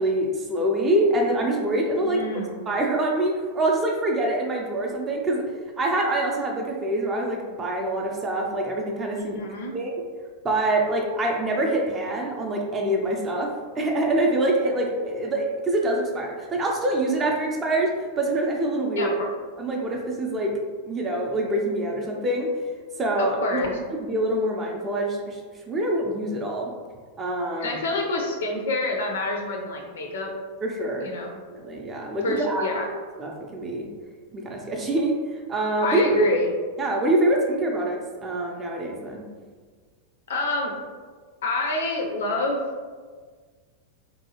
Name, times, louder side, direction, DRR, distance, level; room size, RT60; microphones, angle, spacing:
voice 1, 0.0-5.4 5.8-9.4 9.7-9.9 10.4-19.1 19.6-20.5 20.9-22.5 23.0-25.4 25.7-26.7 27.2-27.8 30.6-31.1 31.5-32.6 33.2-33.9 34.3-35.2 35.5-36.2 36.8-39.3, right 1 dB, 20° right, 0 dB, 0.4 m, -25 dB
voice 2, 2.0-2.7 9.2-9.8 18.9-19.3 23.2-23.7 27.5-30.3 31.0-31.4 32.2-32.9 35.8-36.5 40.3-40.8 41.4-42.6, left 2 dB, 60° left, 2 dB, 0.4 m, -28 dB
2.6 x 2.2 x 2.8 m, 1.6 s
figure-of-eight pair, 90°, 0 cm